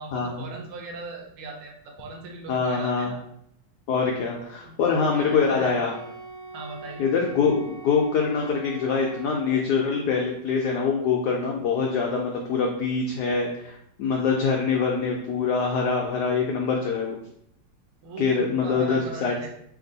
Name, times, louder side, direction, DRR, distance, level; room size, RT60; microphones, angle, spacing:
voice 1, 0.0-3.2 4.0-4.1 4.6-5.7 6.5-7.1 18.0-19.5, right 3 dB, 90° right, 1 dB, 1.7 m, -38 dB
voice 2, 2.5-3.1 3.9-5.9 7.0-17.2 18.2-19.5, left 5 dB, 85° left, 0 dB, 0.8 m, -24 dB
Wind instrument woodwind instrument, 4.8-9.7, right 3 dB, 70° right, 0.9 m, -42 dB
3.5 x 2.6 x 3.9 m, 0.72 s
omnidirectional pair, 2.3 m